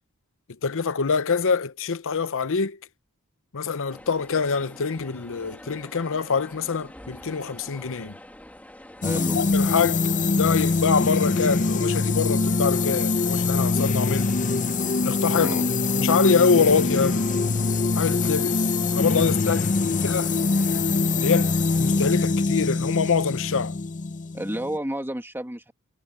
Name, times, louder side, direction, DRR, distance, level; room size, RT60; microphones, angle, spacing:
voice 1, 0.6-2.8 3.5-8.1 9.3-10.0 10.4-14.4 15.0-15.6 15.9-17.2 18.0-18.7 18.9-20.3 21.2-23.8, left 5 dB, 65° left, 0.8 m, -25 dB
sound 1, 3.9-22.1, left 1 dB, 5° left, 2.1 m, -45 dB
sound 2, 9.0-24.8, left 3 dB, 35° left, 0.6 m, -23 dB
voice 2, 9.0-9.4 15.4-15.7 24.3-25.7, right 1 dB, 10° right, 2.0 m, -30 dB
head